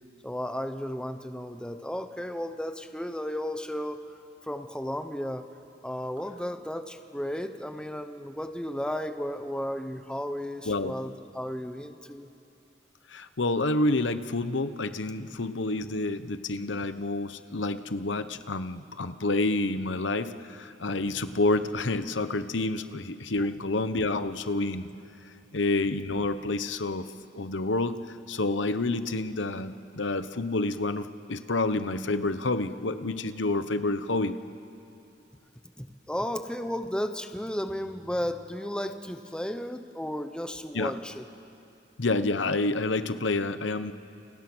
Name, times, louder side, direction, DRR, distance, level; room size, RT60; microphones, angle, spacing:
voice 1, 0.2-4.0 4.4-5.5 5.8-12.3 35.8-41.3, equal, 5° left, 8 dB, 1.0 m, -34 dB
voice 2, 13.1-24.9 25.5-27.1 27.3-34.4 40.7-40.9 42.0-43.9, left 2 dB, 75° left, 11 dB, 1.0 m, -28 dB
29.0 x 29.0 x 6.2 m, 2.8 s
head